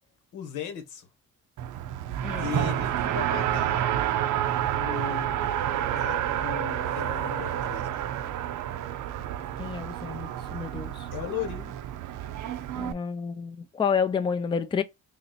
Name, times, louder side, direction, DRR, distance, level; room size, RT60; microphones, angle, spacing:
voice 1, 0.3-1.1 2.4-3.9 4.7-5.6 6.0-8.1 11.1-11.7, left 9 dB, 80° left, 1.2 m, -37 dB
Race car auto racing, 1.6-12.9, right 11 dB, 80° right, 0.6 m, -29 dB
voice 2, 2.2-2.5 9.6-11.1 12.8-14.8, left 6 dB, 15° left, 0.4 m, -29 dB
3.1 x 2.8 x 4.0 m
cardioid pair, 90°, 30 cm